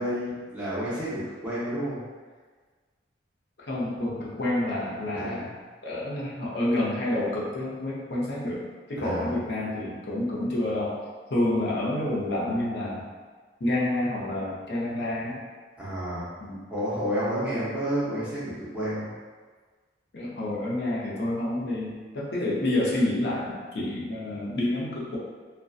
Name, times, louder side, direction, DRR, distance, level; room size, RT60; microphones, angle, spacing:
voice 1, 0.0-2.0 5.1-5.4 9.0-9.3 15.8-16.3 16.7-19.1 20.2-20.4, equal, 5° right, -11 dB, 0.6 m, -30 dB
voice 2, 3.7-5.5 5.8-8.6 8.9-11.0 11.3-13.1 13.6-15.4 16.4-16.7 20.1-25.2, left 1 dB, 60° left, -5 dB, 0.6 m, -28 dB
2.5 x 2.1 x 2.3 m, 1.4 s
head